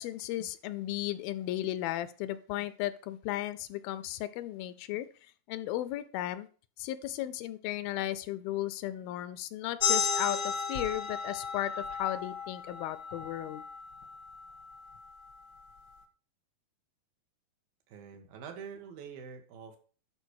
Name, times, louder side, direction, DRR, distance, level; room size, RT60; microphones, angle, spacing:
voice 1, 0.0-5.1 5.5-6.5 6.8-13.6, left 14 dB, 80° left, 14 dB, 2.3 m, -35 dB
sound 1, 9.8-15.0, left 5 dB, 60° left, 1.1 m, -34 dB
voice 2, 17.9-19.8, right 6 dB, 70° right, 5 dB, 3.2 m, -45 dB
11.0 x 4.7 x 6.4 m, 0.40 s
omnidirectional pair, 4.4 m